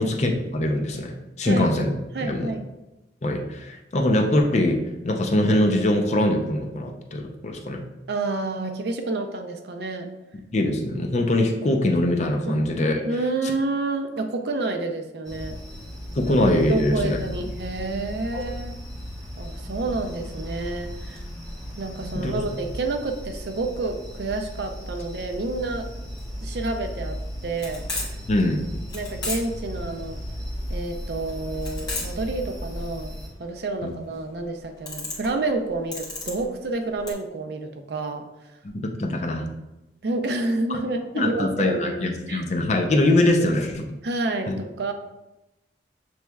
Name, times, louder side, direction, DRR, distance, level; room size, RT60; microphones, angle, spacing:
voice 1, 0.0-1.9 2.2-2.5 3.2-7.8 10.5-13.0 16.2-17.2 18.3-18.4 22.1-22.4 28.3-28.7 33.8-33.9 38.8-39.5 41.1-44.0 44.5-44.6, left 1 dB, 40° left, 3 dB, 0.5 m, -23 dB
voice 2, 2.1-2.6 8.1-10.1 12.5-12.7 13.0-15.6 16.7-18.7 19.4-21.2 21.8-25.9 26.4-27.8 28.9-30.2 30.7-38.3 40.0-42.5 44.0-44.9, right 2 dB, 65° right, 6 dB, 0.5 m, -29 dB
sound 1, 15.2-33.3, equal, 5° left, 1.0 m, -35 dB
sound 2, 26.2-37.1, left 3 dB, 25° left, 1.1 m, -36 dB
6.8 x 3.1 x 2.3 m, 0.97 s
head